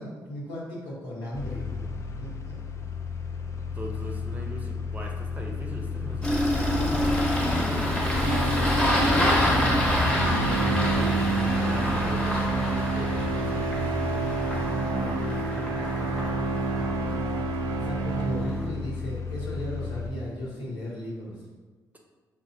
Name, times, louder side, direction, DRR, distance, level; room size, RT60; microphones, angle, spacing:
voice 1, 0.0-1.9 2.2-2.5 15.1-16.9 17.8-21.5, equal, 85° left, -6 dB, 1.1 m, -37 dB
sound 1, 1.3-20.1, left 5 dB, 40° left, 0.4 m, -33 dB
voice 2, 3.7-8.5 9.0-9.4 10.1-13.8, right 1 dB, 20° right, 0 dB, 0.7 m, -39 dB
Engine starting, 6.2-18.6, equal, 10° left, 1.0 m, -27 dB
sound 2, 8.1-18.9, right 4 dB, 70° right, 0.4 m, -29 dB
4.7 x 2.2 x 2.6 m, 1.3 s
supercardioid pair, 60°, 8 cm